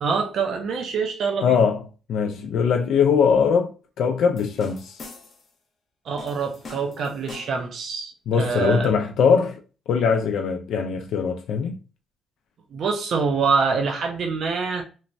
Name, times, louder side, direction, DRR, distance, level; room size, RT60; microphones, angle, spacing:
voice 1, 0.0-1.6 6.0-8.9 12.7-14.8, right 5 dB, 65° right, 0.5 m, -25 dB
voice 2, 1.4-1.8 2.1-3.7 4.0-5.0 8.3-9.6 9.9-11.8, left 6 dB, 75° left, 0.3 m, -21 dB
sound 1, 4.4-5.5 6.2-7.7, left 3 dB, 55° left, 0.7 m, -43 dB
3.0 x 2.1 x 2.5 m
cardioid pair, 90°, 0 cm